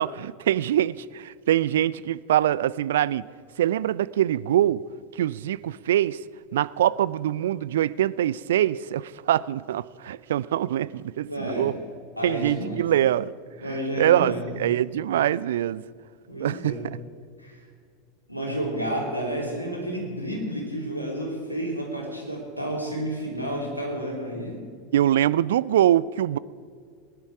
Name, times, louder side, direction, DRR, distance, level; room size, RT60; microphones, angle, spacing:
voice 1, 0.0-3.2 3.6-4.8 5.2-6.2 6.5-11.7 12.2-13.3 14.0-15.8 16.4-16.8 24.9-26.4, right 12 dB, 60° right, 0.3 m, -23 dB
voice 2, 11.3-11.8 12.2-12.8 13.6-14.4 16.3-16.8 17.4-17.6 18.3-24.6, right 1 dB, 90° left, 3.1 m, -31 dB
20.0 x 10.5 x 4.8 m
figure-of-eight pair, 85°, 0 cm